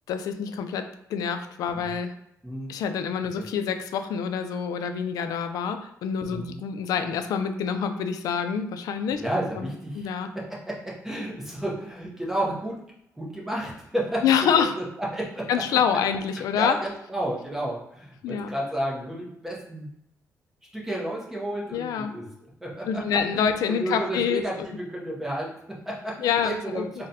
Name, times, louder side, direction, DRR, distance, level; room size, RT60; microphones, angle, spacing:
voice 1, 0.1-2.1 2.7-9.2 9.6-10.3 14.2-14.7 15.5-16.8 18.2-18.5 21.7-22.1 22.9-24.4 26.2-27.1, left 7 dB, 90° left, 8 dB, 0.3 m, -26 dB
voice 2, 6.3-6.6 9.2-12.8 13.2-14.2 14.6-14.8 15.1-15.5 16.6-19.9 20.7-23.0 23.3-27.1, right 1 dB, 5° right, -5 dB, 0.7 m, -32 dB
4.0 x 2.1 x 2.6 m, 0.78 s
cardioid pair, 175°, 6 cm